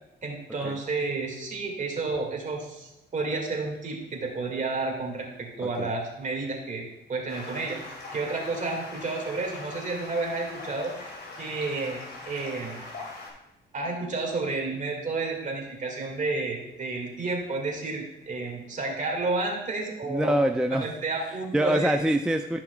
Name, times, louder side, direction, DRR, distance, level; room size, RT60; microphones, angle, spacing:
voice 1, 0.2-6.8 7.1-7.8 8.1-10.9 11.4-12.8 13.7-20.3 20.7-22.0, right 3 dB, 40° right, 0 dB, 2.1 m, -31 dB
Stream, 7.3-13.3, left 2 dB, 55° left, 2.7 m, -41 dB
voice 2, 20.1-20.9 21.5-22.6, right 1 dB, 5° right, 5 dB, 0.4 m, -24 dB
12.0 x 5.7 x 2.3 m, 0.94 s
cardioid pair, 90°, 20 cm